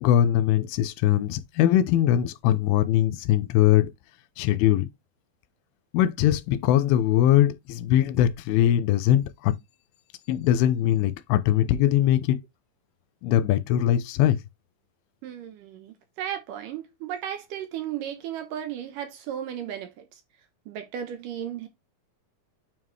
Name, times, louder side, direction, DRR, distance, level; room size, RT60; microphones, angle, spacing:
voice 1, 0.0-3.9 4.4-4.9 5.9-9.5 10.3-12.4 13.2-14.4, left 11 dB, 85° left, 2.6 m, -21 dB
voice 2, 15.2-20.1 20.7-21.7, right 10 dB, 75° right, 2.2 m, -35 dB
9.0 x 3.7 x 3.1 m
omnidirectional pair, 4.3 m